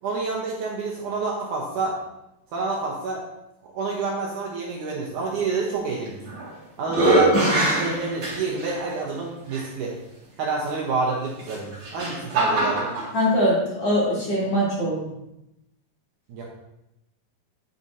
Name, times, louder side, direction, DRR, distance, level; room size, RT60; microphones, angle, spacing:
voice 1, 0.0-2.0 2.5-3.2 3.6-6.2 6.8-9.9 10.4-12.9 16.3-16.4, right 4 dB, 70° right, -2 dB, 2.1 m, -28 dB
sound 1, 6.1-6.5 6.9-8.7 9.5-9.6 11.4-13.1, right 1 dB, 40° right, 2.4 m, -22 dB
voice 2, 13.1-15.1, equal, 45° left, -6 dB, 2.7 m, -22 dB
8.7 x 8.7 x 2.8 m, 0.89 s
omnidirectional pair, 4.4 m